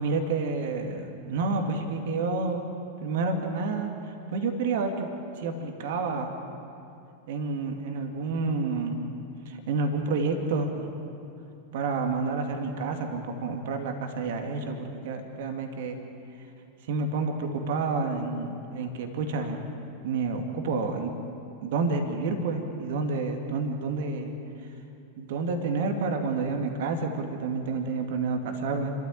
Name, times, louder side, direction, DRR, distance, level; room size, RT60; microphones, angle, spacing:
voice 1, 0.0-2.6 3.0-3.9 4.3-5.1 5.4-6.3 7.3-9.0 9.5-10.9 11.7-16.0 16.9-19.6 20.0-21.1 21.6-24.3 25.2-28.9, right 3 dB, 55° right, 4 dB, 2.4 m, -29 dB
29.5 x 13.5 x 8.7 m, 2.6 s
figure-of-eight pair, 90°, 0 cm